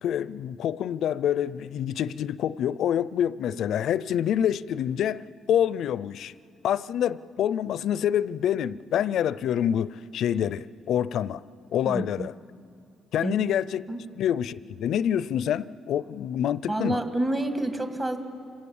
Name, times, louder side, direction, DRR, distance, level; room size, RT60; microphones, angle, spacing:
voice 1, 0.0-5.2 5.5-6.3 6.6-11.4 11.7-12.3 13.1-13.8 14.2-17.0, left 10 dB, 75° left, 0.5 m, -26 dB
voice 2, 11.9-12.3 13.2-13.3 13.9-14.0 16.7-18.2, right 1 dB, 30° right, 2.0 m, -28 dB
29.5 x 17.5 x 7.2 m
cardioid pair, 90°, 0 cm